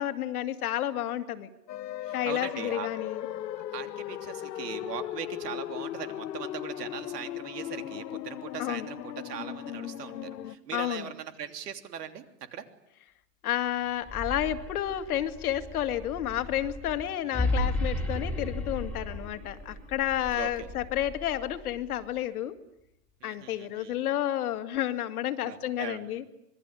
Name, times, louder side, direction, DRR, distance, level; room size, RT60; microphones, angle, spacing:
voice 1, 0.0-1.5 2.1-3.3 8.6-8.9 10.7-11.1 13.4-22.6 23.2-26.2, left 12 dB, 60° left, 9 dB, 2.2 m, -31 dB
sound 1, 1.7-10.5, left 12 dB, 75° left, 1.4 m, -37 dB
voice 2, 2.0-2.9 3.7-12.2 12.5-12.6 17.3-17.5 20.3-20.7 23.2-23.9 25.4-26.1, right 9 dB, 70° right, 8 dB, 3.3 m, -40 dB
sound 2, 13.9-22.0, left 1 dB, 5° left, 3.1 m, -35 dB
26.0 x 22.0 x 9.9 m, 0.82 s
hypercardioid pair, 160°, 50 cm